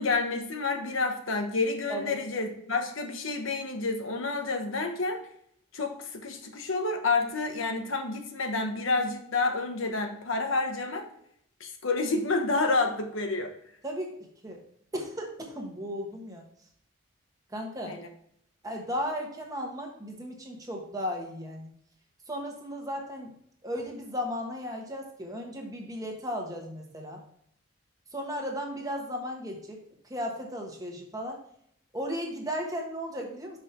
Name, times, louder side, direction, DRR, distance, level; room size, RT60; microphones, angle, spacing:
voice 1, 0.0-5.2 5.7-11.1 11.6-13.5 17.9-18.1, left 3 dB, 75° left, 5 dB, 1.1 m, -29 dB
voice 2, 14.9-16.4 17.5-18.0 18.6-21.7 22.3-23.4 23.6-27.2 28.1-29.8 30.1-31.4 31.9-33.6, equal, 20° right, 1 dB, 1.3 m, -35 dB
6.1 x 5.4 x 4.4 m, 0.69 s
head